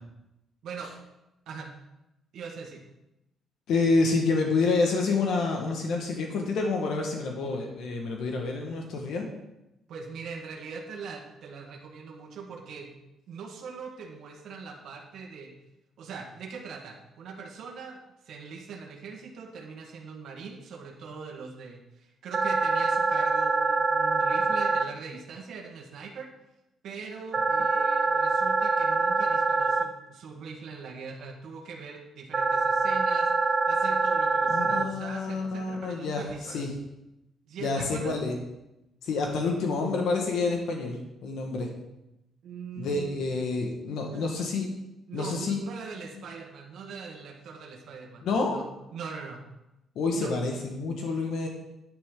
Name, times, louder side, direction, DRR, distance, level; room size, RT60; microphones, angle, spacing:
voice 1, 2.3-2.8 9.9-13.0 13.3-15.5 16.0-18.0 18.2-26.3 26.8-36.7 37.5-38.1 42.4-43.4 43.9-44.4 45.1-48.7 48.9-49.4 50.2-50.3, right 5 dB, 65° right, -1 dB, 1.6 m, -41 dB
voice 2, 3.7-9.3 34.5-36.2 36.5-36.7 37.6-38.3 39.0-41.7 42.8-44.7 45.1-45.6 48.2-48.6 49.9-51.5, left 3 dB, 70° left, 2 dB, 1.6 m, -28 dB
sound 1, 22.3-24.8 27.3-29.8 32.3-34.8, right 4 dB, 30° right, 0.7 m, -25 dB
10.0 x 9.8 x 3.8 m, 0.92 s
cardioid pair, 155°, 0 cm